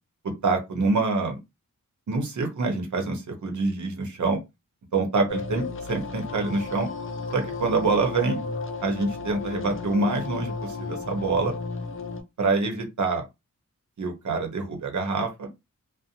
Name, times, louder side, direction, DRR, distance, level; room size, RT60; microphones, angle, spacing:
voice 1, 0.4-1.4 2.1-4.4 4.9-6.9 7.3-8.5 8.8-11.5 12.4-13.2 14.0-15.5, right 3 dB, 65° right, 4 dB, 0.8 m, -26 dB
sound 1, 5.3-12.2, left 4 dB, 40° left, 0.5 m, -33 dB
2.6 x 2.1 x 2.7 m, 0.22 s
wide cardioid pair, 115°, 32 cm